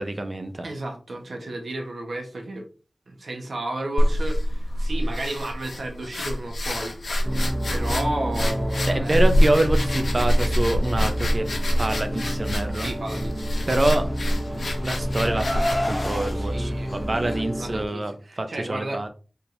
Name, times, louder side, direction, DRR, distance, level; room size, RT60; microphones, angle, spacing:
voice 1, 0.0-0.7 8.9-11.5 11.8-12.9 13.7-14.1 14.5-19.1, right 2 dB, 45° right, 7 dB, 0.7 m, -26 dB
voice 2, 0.6-2.6 3.1-6.9 7.7-9.2 12.8-13.5 16.3-19.0, right 1 dB, 85° right, 3 dB, 1.1 m, -33 dB
sound 1, 4.0-17.4, equal, 85° left, 0.9 m, -26 dB
sound 2, 7.2-17.9, equal, 20° right, 1.1 m, -29 dB
Car, 14.1-16.3, left 1 dB, 30° left, 0.9 m, -30 dB
4.4 x 3.6 x 2.6 m, 0.35 s
wide cardioid pair, 55°, 0 cm